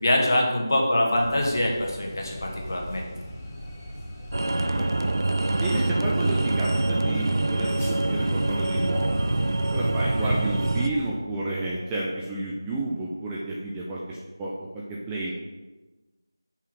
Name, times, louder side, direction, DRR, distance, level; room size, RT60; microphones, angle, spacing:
voice 1, 0.0-3.0 10.2-10.3, left 1 dB, 55° left, -1 dB, 1.8 m, -24 dB
sound 1, 1.1-11.1, equal, 15° left, 1.0 m, -41 dB
sound 2, 4.3-10.9, right 2 dB, 65° right, 0.5 m, -25 dB
voice 2, 4.6-5.1 5.6-9.4 9.7-15.3, right 2 dB, 5° right, -5 dB, 0.3 m, -31 dB
5.7 x 4.8 x 6.1 m, 1.2 s
figure-of-eight pair, 175°, 2 cm